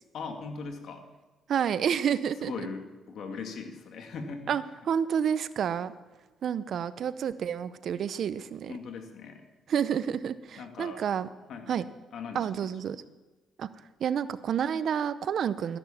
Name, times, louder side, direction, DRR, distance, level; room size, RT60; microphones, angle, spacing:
voice 1, 0.1-1.1 2.4-4.5 8.7-9.4 10.6-11.0 11.5-11.8 12.1-12.7, left 5 dB, 70° left, 5 dB, 2.2 m, -39 dB
voice 2, 1.5-2.5 4.5-5.9 6.4-8.7 9.7-11.3 11.7-11.8 12.3-13.0 13.6-13.7 14.0-15.8, right 8 dB, 65° right, 15 dB, 0.7 m, -29 dB
14.0 x 11.0 x 7.3 m, 1.2 s
cardioid pair, 90°, 0 cm